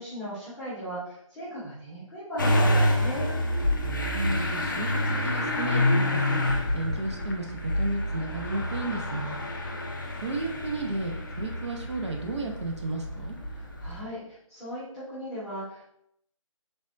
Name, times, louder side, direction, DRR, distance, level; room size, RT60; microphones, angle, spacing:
voice 1, 0.0-3.3 13.5-15.9, equal, ahead, -15 dB, 0.7 m, -37 dB
Motor vehicle (road) / Engine starting, 2.4-14.0, left 1 dB, 35° left, 0.3 m, -28 dB
voice 2, 4.1-5.0 5.2-6.4 6.7-9.4 10.2-13.4, right 2 dB, 55° right, 1 dB, 0.5 m, -33 dB
3.3 x 2.0 x 2.5 m, 0.73 s
figure-of-eight pair, 160°, 18 cm